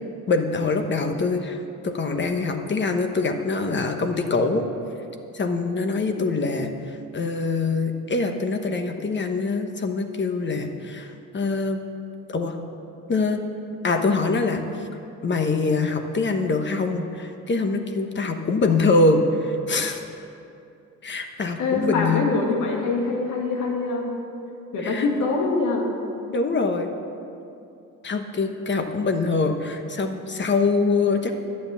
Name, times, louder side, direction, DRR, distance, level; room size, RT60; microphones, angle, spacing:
voice 1, 0.3-4.6 5.3-11.8 12.3-12.6 13.1-13.4 13.8-14.9 15.2-20.0 21.0-22.2 24.8-25.0 26.3-26.9 28.0-31.3, left 3 dB, 40° left, 5 dB, 1.2 m, -24 dB
voice 2, 21.6-24.1 24.7-26.0, left 3 dB, 80° left, 1 dB, 2.0 m, -24 dB
11.5 x 7.9 x 7.0 m, 2.7 s
cardioid pair, 90°, 30 cm